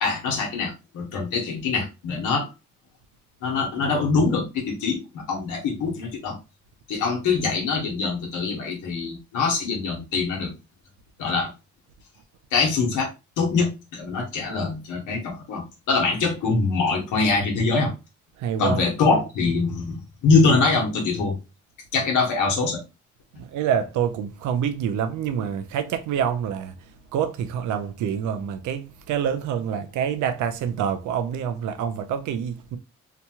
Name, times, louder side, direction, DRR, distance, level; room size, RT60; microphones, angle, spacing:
voice 1, 0.0-2.5 3.4-6.4 6.9-10.5 11.2-11.5 12.5-13.1 13.4-17.9 18.6-21.4 21.9-22.8, left 4 dB, 85° left, 1.0 m, -23 dB
voice 2, 18.4-18.9 23.3-26.8 27.1-32.8, right 8 dB, 75° right, 0.5 m, -26 dB
2.9 x 2.2 x 2.8 m
cardioid pair, 90°, 30 cm